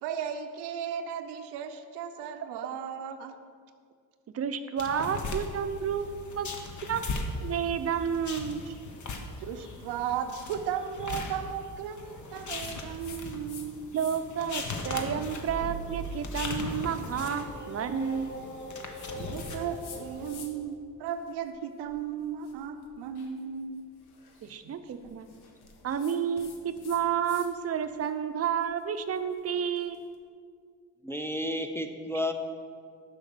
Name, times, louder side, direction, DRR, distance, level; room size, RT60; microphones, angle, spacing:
voice 1, 0.0-3.3 8.6-8.8 9.4-13.9 19.2-23.8 24.4-24.6 24.8-25.1, right 8 dB, 90° right, 8 dB, 0.7 m, -36 dB
voice 2, 4.3-8.6 13.9-18.4 24.4-25.3 25.8-30.0, right 7 dB, 40° right, 10 dB, 0.6 m, -31 dB
sound 1, 4.8-20.4, left 3 dB, 50° left, 1.1 m, -39 dB
sound 2, 12.5-13.7 13.9-14.4 15.0-20.7 21.1-27.5 27.8-30.0, left 6 dB, 75° left, 1.1 m, -52 dB
sound 3, 14.5-20.4, right 2 dB, 25° left, 2.2 m, -42 dB
voice 3, 31.0-32.3, left 1 dB, 5° left, 6 dB, 0.6 m, -31 dB
6.4 x 5.9 x 6.1 m, 2.1 s
cardioid pair, 80°, 39 cm